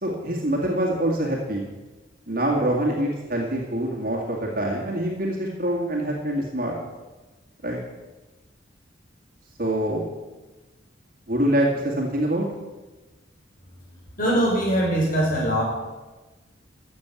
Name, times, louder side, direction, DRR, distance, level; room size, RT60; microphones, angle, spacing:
voice 1, 0.0-1.6 2.3-6.7 7.6-7.8 9.6-10.1 11.3-12.5, right 1 dB, 50° right, -2 dB, 2.1 m, -25 dB
voice 2, 14.2-15.6, right 1 dB, 45° left, -2 dB, 5.1 m, -22 dB
13.5 x 7.5 x 8.3 m, 1.2 s
head